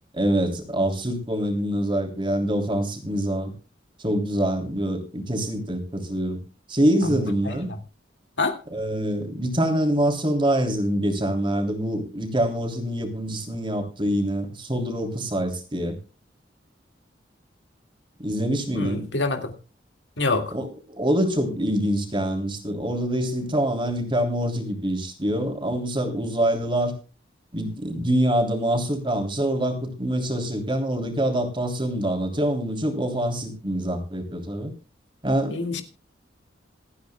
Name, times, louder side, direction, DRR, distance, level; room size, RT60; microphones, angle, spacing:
voice 1, 0.1-3.5 4.0-6.4 6.7-7.7 8.7-16.0 18.2-19.1 20.5-26.9 27.5-34.7 35.2-35.8, right 1 dB, 30° right, 4 dB, 3.2 m, -25 dB
voice 2, 7.1-7.5 8.4-8.6 18.7-19.5 20.2-20.5 35.5-35.8, left 3 dB, 80° left, 7 dB, 2.1 m, -26 dB
27.0 x 9.3 x 2.3 m, 0.31 s
head